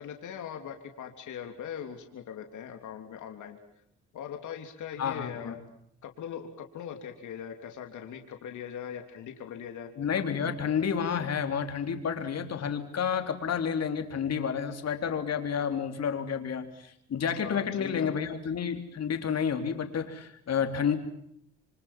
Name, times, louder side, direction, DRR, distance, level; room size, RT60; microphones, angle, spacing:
voice 1, 0.0-3.6 4.1-5.6 6.0-9.9 10.4-10.5 17.4-18.1, left 8 dB, 75° left, 5 dB, 3.3 m, -40 dB
voice 2, 5.0-5.6 10.0-21.0, left 7 dB, 55° left, 7 dB, 3.9 m, -30 dB
28.5 x 25.0 x 7.5 m, 0.71 s
cardioid pair, 90°, 30 cm